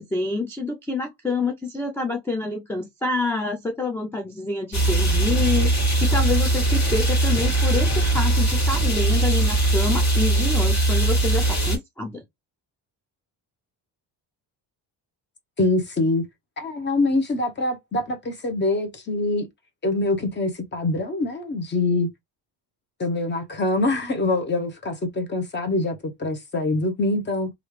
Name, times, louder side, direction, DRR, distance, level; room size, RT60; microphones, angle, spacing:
voice 1, 0.0-12.2, left 3 dB, 5° left, 0.4 m, -27 dB
sound 1, 4.7-11.8, right 2 dB, 45° left, 1.9 m, -20 dB
voice 2, 15.6-16.2 16.6-19.5 19.8-22.1 23.0-27.5, left 2 dB, 25° left, 0.9 m, -24 dB
3.0 x 2.5 x 3.2 m
cardioid pair, 140°, 41 cm